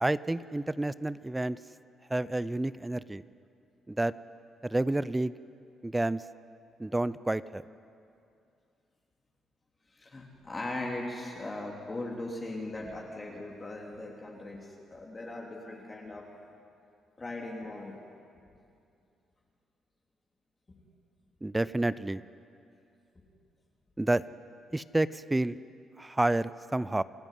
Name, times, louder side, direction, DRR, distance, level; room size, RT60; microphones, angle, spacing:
voice 1, 0.0-1.6 2.1-3.2 3.9-4.1 4.6-5.3 5.8-6.2 6.8-7.6 21.4-22.2 24.0-24.2 24.7-25.6 26.0-27.0, right 2 dB, 15° right, 17 dB, 0.5 m, -29 dB
voice 2, 9.9-16.2 17.2-17.9, left 2 dB, 25° left, -1 dB, 3.2 m, -39 dB
27.5 x 13.0 x 9.3 m, 2.5 s
cardioid pair, 90°, 0 cm